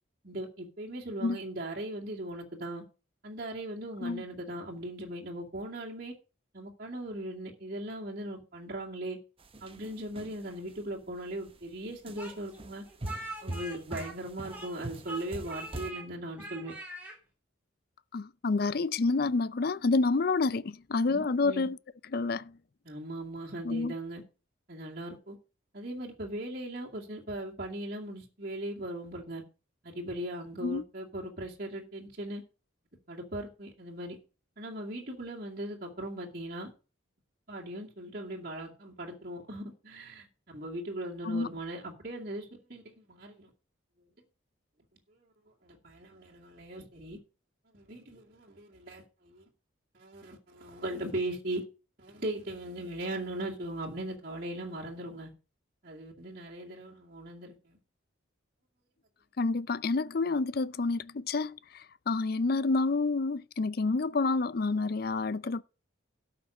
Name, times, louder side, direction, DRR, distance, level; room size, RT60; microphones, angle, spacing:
voice 1, 0.2-2.8 3.2-6.1 6.5-9.2 9.6-12.8 13.4-16.7 21.1-21.7 22.8-24.2 24.7-25.4 25.7-29.4 29.8-32.4 33.1-34.2 34.6-36.7 37.5-43.5 45.1-45.3 45.6-47.2 47.7-49.5 49.9-51.6 52.0-55.3 55.8-57.8, right 1 dB, 45° right, 2.4 m, -39 dB
sound 1, 9.4-10.8 11.3-11.6 12.1-15.9, right 1 dB, 25° right, 0.9 m, -42 dB
Speech, 12.2-14.8 15.0-16.1 16.4-17.2, right 2 dB, 10° right, 3.6 m, -42 dB
voice 2, 18.1-21.8 22.1-22.6 23.6-23.9 30.6-30.8 41.2-41.5 59.4-65.6, left 3 dB, 45° left, 0.5 m, -29 dB
13.0 x 6.0 x 6.4 m
head